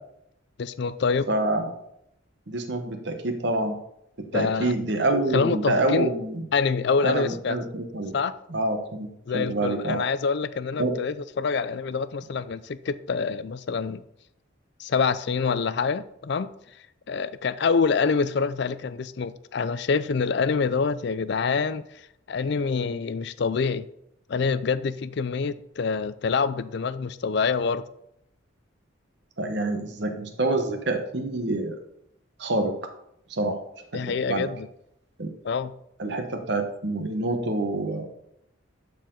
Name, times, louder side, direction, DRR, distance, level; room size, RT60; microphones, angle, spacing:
voice 1, 0.6-1.3 4.3-4.7 5.3-6.1 6.5-7.6 8.1-8.3 9.3-14.0 14.8-16.5 17.1-21.8 22.3-23.9 24.3-27.8 33.9-34.7 35.4-35.7, left 5 dB, 55° left, 0.4 m, -26 dB
voice 2, 1.3-1.7 2.5-3.8 4.3-6.4 7.0-8.1 8.5-9.1 9.3-10.0 10.8-11.0 29.4-31.7 32.4-32.7 33.3-33.5 33.9-34.5 35.2-35.3 36.0-38.1, right 2 dB, 55° right, 1.1 m, -27 dB
11.5 x 4.6 x 3.8 m
head